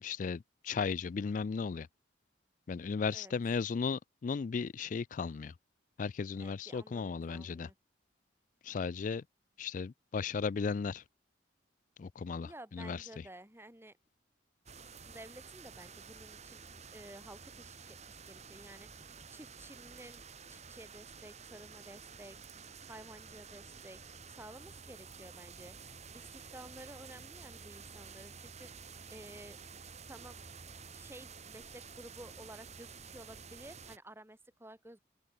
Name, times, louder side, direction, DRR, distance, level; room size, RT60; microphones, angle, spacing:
voice 1, 0.0-1.9 2.7-5.5 6.0-7.7 8.6-9.2 9.6-11.0 12.0-13.0, left 5 dB, 40° left, 0.3 m, -35 dB
voice 2, 6.4-7.8 12.4-14.0 15.1-18.0 18.3-20.2 20.5-22.5 22.9-24.0 24.4-25.8 26.1-29.6 30.1-30.4 30.9-35.0, right 1 dB, 10° right, 3.5 m, -53 dB
sound 1, 14.7-34.0, right 5 dB, 35° right, 3.1 m, -51 dB
open air
head